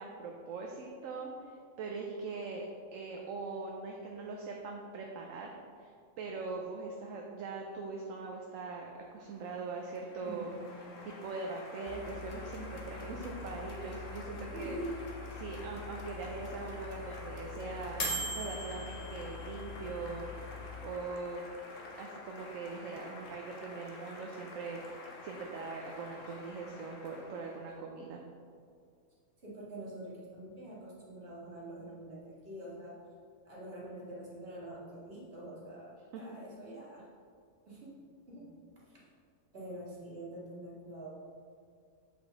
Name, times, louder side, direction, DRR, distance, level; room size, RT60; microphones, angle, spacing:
voice 1, 0.0-5.9 6.2-14.7 15.4-20.3 20.8-21.4 22.0-28.2 36.1-36.2, right 4 dB, 70° right, 0 dB, 1.0 m, -41 dB
Applause, 8.9-27.8, left 2 dB, 65° left, 1.4 m, -49 dB
voice 2, 10.2-11.0 14.5-14.9 29.4-33.0 33.4-37.1 37.7-39.1 39.5-41.1, right 1 dB, 45° right, -7 dB, 2.1 m, -46 dB
sound 1, 11.9-20.9, left 2 dB, 30° left, 0.9 m, -43 dB
7.8 x 5.0 x 4.0 m, 2.2 s
omnidirectional pair, 1.5 m